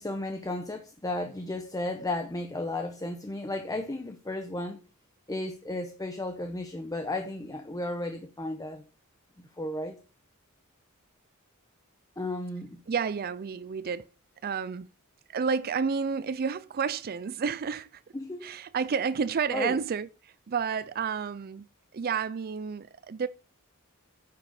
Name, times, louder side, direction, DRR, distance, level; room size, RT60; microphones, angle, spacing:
voice 1, 0.0-4.8 5.3-8.8 9.6-10.0 12.2-12.8 18.1-18.5 19.5-19.8, left 2 dB, 15° left, 0.8 m, -34 dB
voice 2, 12.9-14.1 14.4-14.9 15.3-18.0 18.4-21.7 21.9-23.3, right 6 dB, 45° right, 0.4 m, -30 dB
9.5 x 6.6 x 4.9 m
head